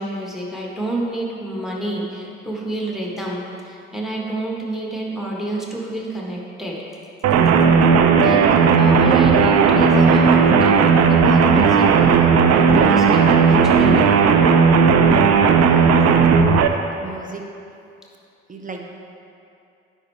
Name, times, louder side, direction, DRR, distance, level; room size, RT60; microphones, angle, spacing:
voice 1, 0.0-6.8 8.2-8.4 8.8-10.8 11.1-11.9 12.2-14.1, right 1 dB, ahead, -2 dB, 1.5 m, -28 dB
sound 1, 7.2-16.7, right 5 dB, 50° right, 0.5 m, -14 dB
voice 2, 8.6-8.9 15.7-16.3 17.0-17.4 18.5-19.0, right 3 dB, 25° right, 2 dB, 0.9 m, -37 dB
9.5 x 4.4 x 3.4 m, 2.6 s
hypercardioid pair, 45°, 32 cm